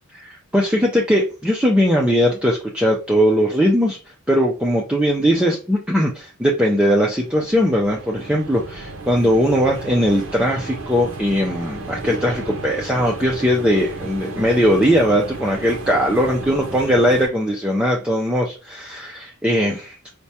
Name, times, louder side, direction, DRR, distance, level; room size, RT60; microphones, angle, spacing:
voice 1, 0.1-4.0 4.3-20.1, equal, 5° right, -2 dB, 0.4 m, -19 dB
sound 1, 6.9-17.3, right 3 dB, 65° right, 0.6 m, -34 dB
4.4 x 2.2 x 2.7 m, 0.34 s
head